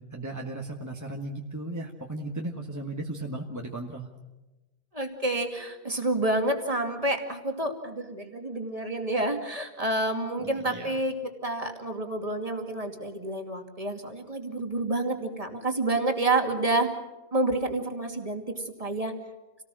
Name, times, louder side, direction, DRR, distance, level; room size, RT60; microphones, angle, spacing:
voice 1, 0.0-4.1 10.4-11.0, right 2 dB, 15° right, 0 dB, 1.6 m, -36 dB
voice 2, 4.9-11.1 11.4-16.9 17.3-19.1, right 2 dB, 30° right, 4 dB, 2.5 m, -29 dB
28.5 x 18.5 x 6.2 m, 1.1 s
omnidirectional pair, 1.1 m